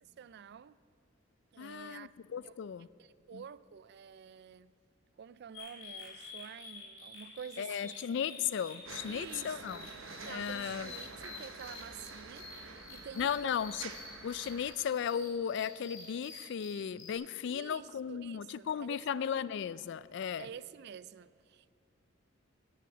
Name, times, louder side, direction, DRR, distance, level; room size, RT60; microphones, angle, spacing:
voice 1, 0.0-0.8 1.5-2.1 2.4-2.5 3.0-4.8 5.2-8.1 9.1-9.9 10.2-13.5 17.5-19.3 20.4-21.7, right 7 dB, 55° right, 0.3 m, -49 dB
voice 2, 1.6-2.9 3.3-3.4 7.6-9.8 10.2-10.9 13.2-13.9 14.2-20.5, left 8 dB, 60° left, 0.3 m, -36 dB
sound 1, 5.5-17.2, left 4 dB, 80° left, 3.2 m, -50 dB
sound 2, 8.8-14.7, right 4 dB, 85° right, 1.0 m, -48 dB
17.5 x 5.8 x 7.2 m
head